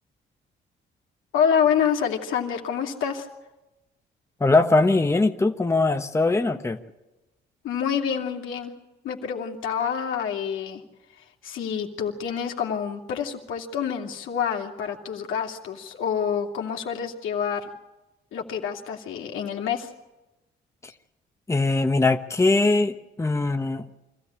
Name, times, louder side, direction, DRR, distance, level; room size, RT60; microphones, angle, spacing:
voice 1, 1.3-3.3 7.6-8.7 9.0-10.8 11.4-17.7 18.3-19.9, left 7 dB, 85° left, 2 dB, 2.7 m, -27 dB
voice 2, 4.4-6.8 21.5-23.8, left 3 dB, 15° left, 6 dB, 1.1 m, -21 dB
25.0 x 14.5 x 8.8 m, 1.0 s
cardioid pair, 90°, 20 cm